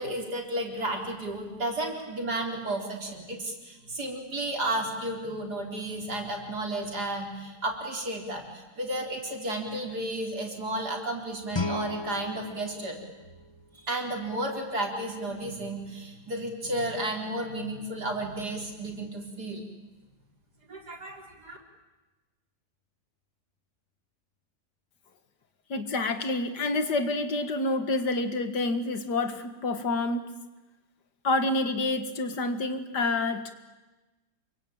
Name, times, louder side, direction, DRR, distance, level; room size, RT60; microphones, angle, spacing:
voice 1, 0.0-12.9 13.8-19.6 20.7-21.6, right 1 dB, 75° right, 2 dB, 4.7 m, -33 dB
Guitar, 11.5-14.3, left 2 dB, 20° left, 0.8 m, -36 dB
voice 2, 25.7-30.3 31.2-33.5, left 2 dB, 90° left, 9 dB, 2.4 m, -28 dB
27.0 x 24.0 x 8.9 m, 1.1 s
omnidirectional pair, 1.7 m